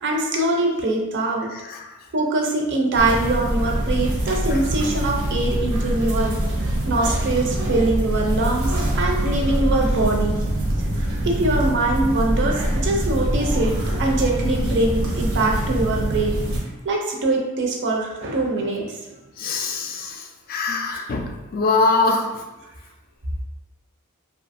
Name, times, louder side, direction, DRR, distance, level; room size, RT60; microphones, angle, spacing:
voice 1, 0.0-1.5 2.1-6.4 6.9-10.4 11.2-16.4 16.8-19.0, right 2 dB, 55° right, 0 dB, 0.5 m, -23 dB
voice 2, 1.5-1.8 19.4-22.4, left 3 dB, 40° left, 2 dB, 0.3 m, -23 dB
sound 1, 2.9-16.6, right 1 dB, 85° right, 0.8 m, -24 dB
2.7 x 2.4 x 2.6 m, 1.1 s
head